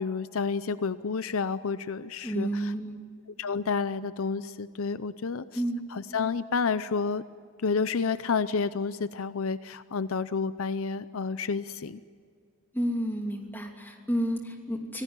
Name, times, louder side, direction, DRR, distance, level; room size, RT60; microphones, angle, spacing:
voice 1, 0.0-2.7 3.4-5.6 5.9-7.2 7.6-12.0, left 5 dB, 65° left, 14 dB, 0.6 m, -30 dB
voice 2, 2.2-3.0 5.5-5.8 12.7-15.0, right 1 dB, 10° left, 2 dB, 2.9 m, -30 dB
25.5 x 17.5 x 9.8 m, 2.1 s
head